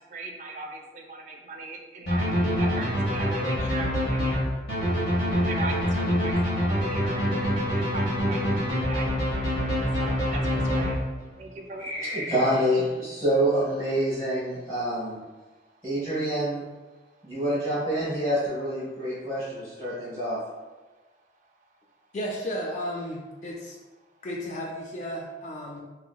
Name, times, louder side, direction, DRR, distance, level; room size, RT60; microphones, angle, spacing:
voice 1, 0.0-4.4 5.4-9.1 10.0-11.0 11.4-12.2, right 2 dB, 40° right, 1 dB, 0.4 m, -39 dB
sound 1, 2.1-11.4, equal, 65° left, 1.2 m, -25 dB
voice 2, 11.8-15.2 15.8-16.6 17.2-20.4, equal, 20° left, -12 dB, 1.0 m, -27 dB
voice 3, 22.1-23.8 24.2-25.8, equal, 40° left, -1 dB, 0.3 m, -33 dB
3.1 x 2.8 x 2.2 m, 1.2 s
head